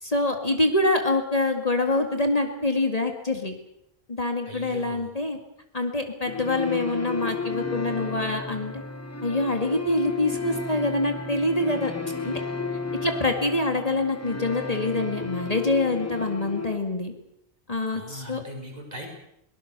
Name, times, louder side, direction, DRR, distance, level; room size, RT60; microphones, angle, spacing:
voice 1, 0.0-3.5 4.1-5.4 5.7-8.7 9.2-11.9 12.2-12.4 13.0-17.1 17.7-18.4, left 2 dB, 40° left, 5 dB, 2.2 m, -25 dB
voice 2, 4.5-5.1 17.9-19.1, equal, 40° right, 1 dB, 5.6 m, -39 dB
sound 1, 6.3-16.8, left 4 dB, 15° left, 1.1 m, -33 dB
23.0 x 19.0 x 6.8 m, 0.77 s
omnidirectional pair, 1.0 m